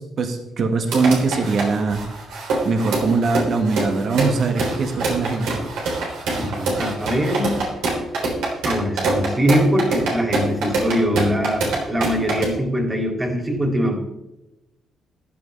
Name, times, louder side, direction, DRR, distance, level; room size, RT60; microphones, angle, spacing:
voice 1, 0.0-2.0 2.6-5.6, right 4 dB, 55° right, 5 dB, 1.6 m, -21 dB
sound 1, 0.9-12.5, right 3 dB, 90° right, 3.7 m, -24 dB
voice 2, 6.3-7.5 8.6-14.0, equal, 20° right, 3 dB, 2.7 m, -22 dB
14.5 x 11.0 x 3.4 m, 0.94 s
cardioid pair, 90°, 0 cm